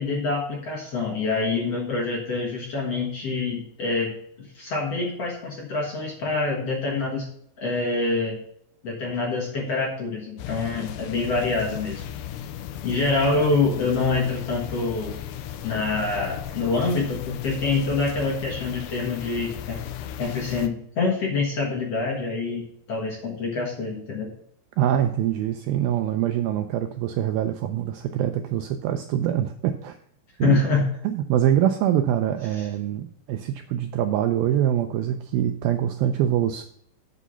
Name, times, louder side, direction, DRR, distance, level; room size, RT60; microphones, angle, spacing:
voice 1, 0.0-4.1 4.5-7.3 7.6-8.4 8.8-12.0 12.8-15.2 15.6-19.8 20.2-24.3 30.4-30.8 32.6-32.7, left 3 dB, 50° left, -1 dB, 1.9 m, -26 dB
sound 1, 10.4-20.7, left 9 dB, 85° left, 2.8 m, -36 dB
voice 2, 24.8-30.0 30.4-30.6 31.0-36.6, right 11 dB, 85° right, 8 dB, 2.1 m, -24 dB
8.2 x 6.2 x 5.5 m, 0.69 s
omnidirectional pair, 4.8 m